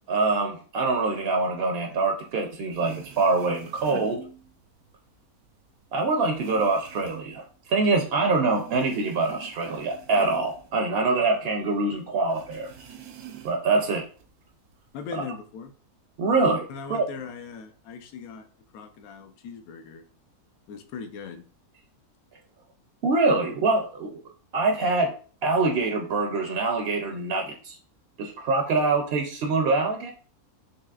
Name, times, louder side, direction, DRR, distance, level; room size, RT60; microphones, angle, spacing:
voice 1, 0.1-4.2 5.9-12.7 13.4-14.1 16.2-17.1 23.0-24.2 24.5-25.1 25.4-27.8 28.2-30.1, right 3 dB, 65° right, 3 dB, 0.6 m, -24 dB
sound 1, 2.4-2.5 2.7-4.9 5.3-8.2 8.5-11.5 11.7-11.8 12.3-13.8 14.2-14.9, right 8 dB, 85° right, 1.1 m, -45 dB
voice 2, 14.9-15.7 16.7-18.5 18.7-20.0 20.7-21.5, left 6 dB, 75° left, 8 dB, 1.0 m, -39 dB
5.7 x 3.0 x 2.3 m, 0.41 s
omnidirectional pair, 1.6 m